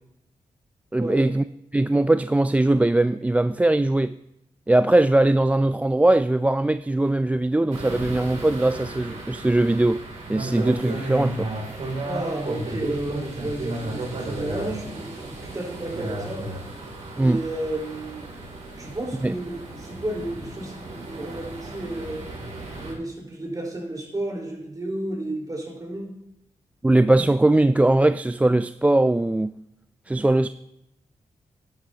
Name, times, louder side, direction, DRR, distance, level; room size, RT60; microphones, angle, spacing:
voice 1, 0.9-1.4 1.7-4.2 4.7-10.0 10.3-11.5 17.2-17.4 19.2-19.3 26.8-29.5 30.1-30.5, right 2 dB, 10° right, 0.4 m, -20 dB
sound 1, 7.7-22.9, right 2 dB, 70° right, 3.0 m, -34 dB
voice 2, 12.0-16.4 17.1-18.3 18.8-22.2 22.8-26.1, right 1 dB, 30° right, 4.4 m, -32 dB
11.5 x 11.0 x 2.9 m
supercardioid pair, 50°, 12 cm